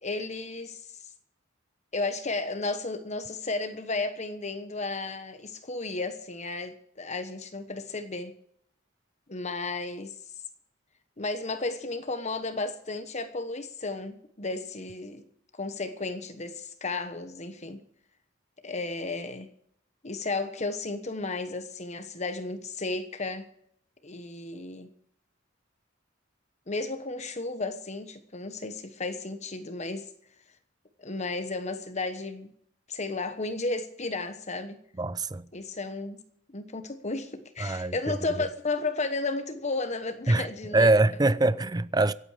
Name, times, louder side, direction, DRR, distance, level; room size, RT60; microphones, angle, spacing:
voice 1, 0.0-0.8 1.9-8.3 9.3-10.1 11.2-15.2 15.6-17.8 18.6-19.5 20.0-23.5 24.0-24.9 26.7-30.1 31.0-32.5 32.9-34.8 35.5-36.2 36.5-40.9, left 3 dB, 35° left, 1.2 m, -33 dB
voice 2, 35.0-35.5 37.6-37.9 40.3-40.5 40.7-42.1, right 2 dB, 20° right, 0.5 m, -23 dB
24.5 x 8.8 x 5.0 m
head